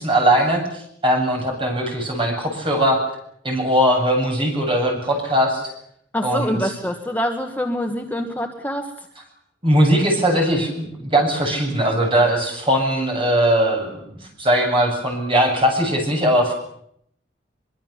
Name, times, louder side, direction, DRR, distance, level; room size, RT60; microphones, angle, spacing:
voice 1, 0.0-3.0 3.4-5.6 6.2-6.7 9.6-16.5, equal, 30° right, 1 dB, 8.0 m, -20 dB
voice 2, 6.1-9.1, equal, 10° left, 3 dB, 1.6 m, -25 dB
24.0 x 23.0 x 7.4 m, 0.71 s
head